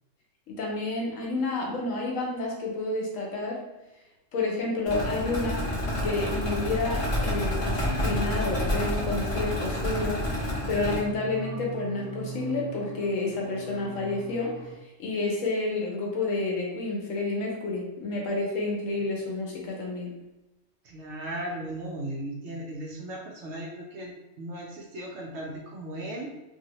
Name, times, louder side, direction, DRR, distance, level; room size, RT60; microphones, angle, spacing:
voice 1, 0.5-3.6 4.3-5.6 6.0-10.2 10.7-14.5 15.0-20.1, left 2 dB, 75° left, -1 dB, 1.1 m, -30 dB
sound 1, 4.9-11.0, left 1 dB, 30° left, 0.7 m, -29 dB
sound 2, 8.9-14.8, right 5 dB, 45° right, 0.3 m, -42 dB
voice 2, 20.8-26.3, right 1 dB, 65° right, -1 dB, 0.8 m, -37 dB
2.7 x 2.7 x 2.9 m, 1.0 s
omnidirectional pair, 1.4 m